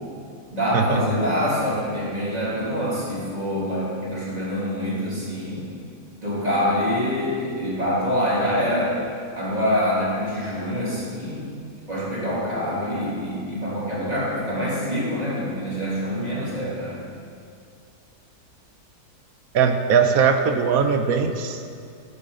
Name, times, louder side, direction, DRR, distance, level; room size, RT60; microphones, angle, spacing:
voice 1, 0.5-5.7 6.2-9.0 9.3-11.5 11.9-17.0, equal, 25° right, -8 dB, 3.0 m, -25 dB
voice 2, 19.5-21.6, right 6 dB, 65° right, 7 dB, 1.1 m, -20 dB
13.0 x 9.6 x 3.8 m, 2.4 s
omnidirectional pair, 1.7 m